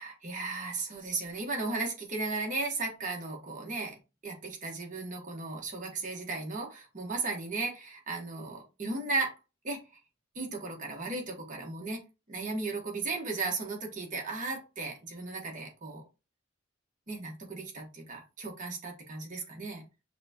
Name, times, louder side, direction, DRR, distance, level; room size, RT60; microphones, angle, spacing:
voice 1, 0.0-4.0 4.2-9.3 9.6-10.0 10.3-12.0 12.3-16.0 17.1-19.8, right 3 dB, 40° right, 1.1 m, -35 dB
5.8 x 2.2 x 2.8 m
head